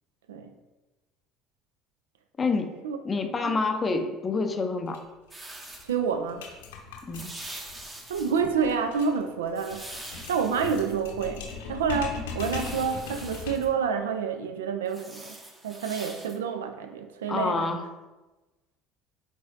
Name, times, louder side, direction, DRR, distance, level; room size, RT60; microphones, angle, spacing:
voice 1, 2.4-2.8 3.0-5.0 7.1-7.3 17.3-17.8, left 4 dB, 25° left, 6 dB, 0.5 m, -27 dB
sound 1, 4.9-5.0 5.3-5.4 5.6-13.8, left 5 dB, 70° left, 0.7 m, -40 dB
sound 2, 5.3-5.8 7.1-8.4 9.6-10.9 12.3-13.7 14.9-16.4, right 1 dB, 15° right, 0.8 m, -43 dB
voice 2, 5.8-6.4 8.1-15.4 15.6-17.7, right 6 dB, 70° right, 7 dB, 0.3 m, -28 dB
4.7 x 3.9 x 2.7 m, 1.1 s
figure-of-eight pair, 60°, 0 cm